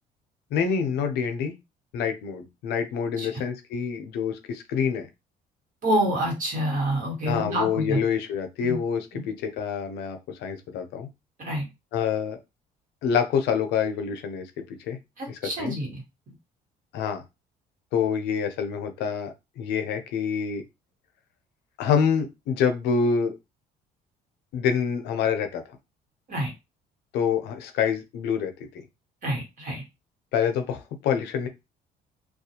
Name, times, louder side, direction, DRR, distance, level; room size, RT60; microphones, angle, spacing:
voice 1, 0.5-1.5 1.9-5.1 7.3-11.1 11.9-12.4 13.0-15.0 15.3-15.7 16.9-17.2 17.9-20.6 21.8-23.3 24.5-25.6 27.1-28.7 30.3-31.5, left 7 dB, 80° left, 7 dB, 0.6 m, -26 dB
voice 2, 5.8-8.0 8.6-8.8 9.1-9.2 11.4-11.7 15.2-16.0 26.3-26.5 29.2-29.8, right 1 dB, 50° right, 0 dB, 1.4 m, -27 dB
2.4 x 2.2 x 2.8 m, 0.24 s
cardioid pair, 110°, 17 cm